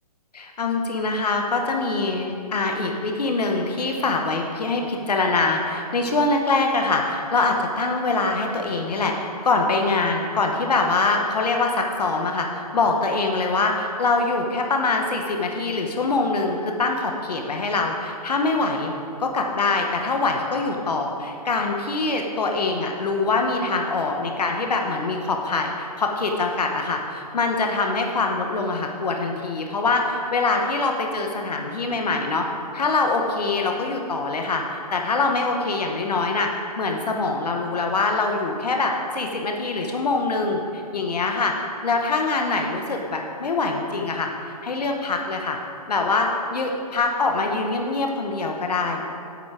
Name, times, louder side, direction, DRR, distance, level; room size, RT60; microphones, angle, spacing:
voice 1, 0.3-18.9 19.2-32.4 32.7-41.5 41.8-45.6 45.9-49.0, left 3 dB, 75° left, 2 dB, 1.1 m, -24 dB
8.7 x 8.3 x 5.0 m, 2.5 s
hypercardioid pair, 180°, 20 cm